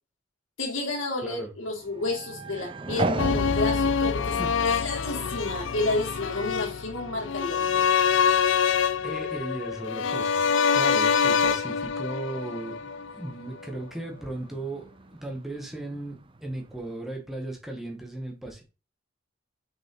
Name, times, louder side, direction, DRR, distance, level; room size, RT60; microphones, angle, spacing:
voice 1, 0.6-4.4 4.7-7.8, left 2 dB, 85° left, 2.4 m, -31 dB
sound 1, 1.6-16.9, right 2 dB, 25° right, 0.6 m, -40 dB
sound 2, 3.2-13.3 13.6-13.7, left 6 dB, 70° left, 0.5 m, -25 dB
voice 2, 9.0-14.9 15.2-18.6, right 2 dB, ahead, 1.6 m, -36 dB
6.2 x 5.4 x 3.8 m
head